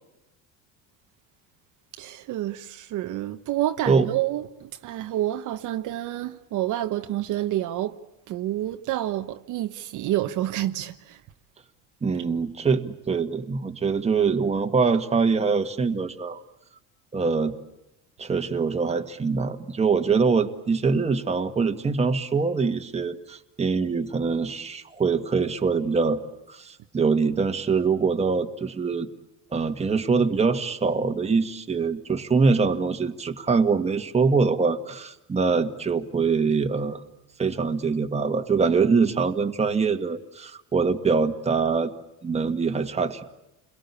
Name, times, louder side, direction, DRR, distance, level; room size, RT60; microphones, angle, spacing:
voice 1, 2.0-8.0 8.3-11.2, right 13 dB, 60° right, 1.3 m, -28 dB
voice 2, 12.0-16.4 17.1-17.5 18.2-26.2 26.5-29.1 29.5-37.0 37.4-41.9 42.2-43.2, right 5 dB, 20° right, 1.9 m, -24 dB
29.5 x 22.5 x 8.5 m
cardioid pair, 130°, 35 cm